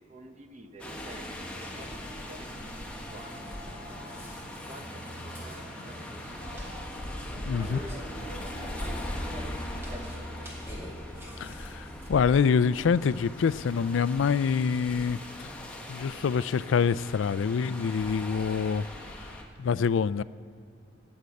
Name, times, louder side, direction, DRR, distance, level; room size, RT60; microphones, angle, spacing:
voice 1, 0.1-2.7 3.0-3.9 4.6-6.4 7.3-10.7, right 2 dB, 35° right, 6 dB, 0.9 m, -50 dB
sound 1, 0.8-19.4, left 1 dB, 5° left, 1.1 m, -40 dB
Burping eructation, 1.5-12.1, equal, 15° right, 2.1 m, -46 dB
voice 2, 7.4-7.8 11.4-15.2 15.9-18.9 19.6-20.2, left 6 dB, 85° left, 17 dB, 0.4 m, -26 dB
16.0 x 6.6 x 8.3 m, 2.3 s
head